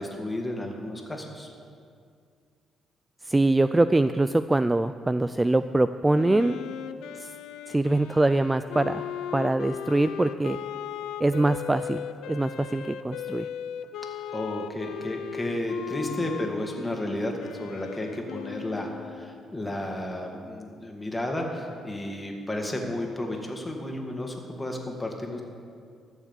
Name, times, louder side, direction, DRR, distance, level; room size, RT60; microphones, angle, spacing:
voice 1, 0.0-1.5 14.3-25.4, left 1 dB, 15° left, 1 dB, 2.0 m, -32 dB
voice 2, 3.2-6.6 7.2-7.3 7.7-9.0 9.3-10.6 11.2-13.5, right 2 dB, 15° right, 12 dB, 0.3 m, -23 dB
Wind instrument woodwind instrument, 6.1-19.5, left 9 dB, 85° left, 0.5 m, -37 dB
13.0 x 7.2 x 7.4 m, 2.3 s
cardioid pair, 90°, 0 cm